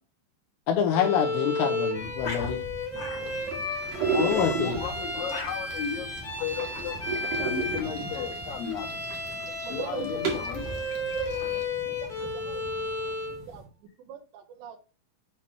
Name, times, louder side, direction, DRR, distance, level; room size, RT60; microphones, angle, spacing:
voice 1, 0.7-2.6 4.2-4.8, left 8 dB, 85° left, 2.7 m, -26 dB
Bowed string instrument, 0.9-13.4, left 2 dB, ahead, 1.5 m, -33 dB
sound 1, 1.9-13.7, left 2 dB, 40° left, 2.2 m, -43 dB
sound 2, 3.2-11.6, right 5 dB, 60° right, 2.4 m, -35 dB
voice 2, 4.0-7.0 7.4-9.0 9.7-10.7, left 8 dB, 60° left, 2.8 m, -35 dB
voice 3, 9.5-10.2 11.1-12.9 13.3-13.6 14.0-14.8, right 6 dB, 75° right, 3.0 m, -40 dB
8.4 x 3.1 x 4.3 m
omnidirectional pair, 5.3 m